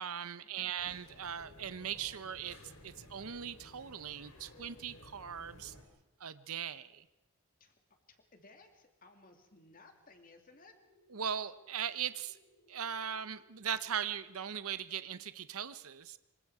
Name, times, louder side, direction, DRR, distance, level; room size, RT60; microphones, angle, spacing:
voice 1, 0.0-2.6 2.8-5.7 6.2-7.0 11.1-12.4 12.7-16.2, right 8 dB, 75° right, 13 dB, 0.8 m, -39 dB
voice 2, 0.5-0.9 7.6-7.8 8.1-10.7, left 3 dB, 40° left, 5 dB, 2.7 m, -59 dB
sound 1, 0.8-5.8, left 1 dB, 70° left, 4.5 m, -56 dB
sound 2, 10.5-15.5, equal, 85° left, 4.1 m, -68 dB
26.5 x 24.5 x 4.9 m, 0.98 s
head